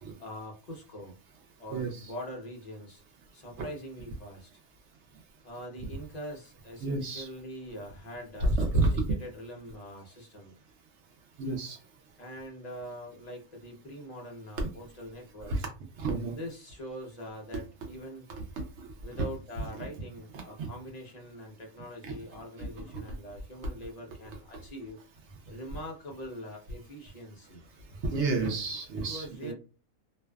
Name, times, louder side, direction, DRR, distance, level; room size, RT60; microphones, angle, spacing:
voice 1, 0.2-1.1 1.6-3.0 3.3-4.6 5.4-10.5 12.2-15.7 16.3-18.2 19.0-25.0 25.5-27.6 28.9-29.5, equal, 45° left, 1 dB, 0.5 m, -43 dB
voice 2, 1.7-2.1 6.8-7.3 8.4-8.9 11.4-11.8 14.6-14.7 15.5-15.6 16.0-16.4 18.8-19.2 19.6-19.9 20.3-20.7 22.0-22.1 22.8-23.0 28.0-29.5, right 2 dB, 65° right, 2 dB, 0.8 m, -30 dB
2.5 x 2.2 x 2.2 m, 0.33 s
omnidirectional pair, 1.4 m